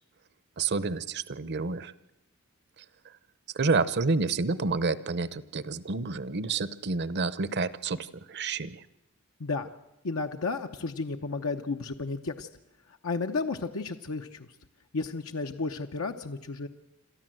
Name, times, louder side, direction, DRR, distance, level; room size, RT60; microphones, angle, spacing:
voice 1, 0.6-1.9 3.5-8.8, right 4 dB, 50° right, 17 dB, 0.8 m, -29 dB
voice 2, 10.0-12.5 13.0-14.5 14.9-16.7, left 3 dB, 75° left, 5 dB, 0.9 m, -32 dB
27.5 x 13.5 x 7.7 m, 0.91 s
head